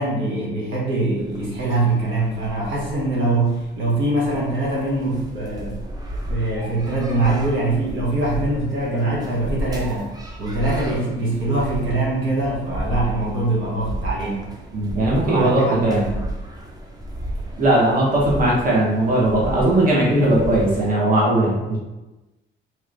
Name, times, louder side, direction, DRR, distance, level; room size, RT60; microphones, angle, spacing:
voice 1, 0.0-5.8 6.3-10.1 10.4-14.5 15.3-16.2, right 2 dB, 75° right, -5 dB, 1.1 m, -23 dB
sound 1, 1.2-20.9, equal, 20° right, 0.6 m, -33 dB
voice 2, 14.7-16.1 17.6-21.8, right 1 dB, 45° right, -5 dB, 1.0 m, -18 dB
3.2 x 2.9 x 2.5 m, 1.1 s
cardioid pair, 90°, 20 cm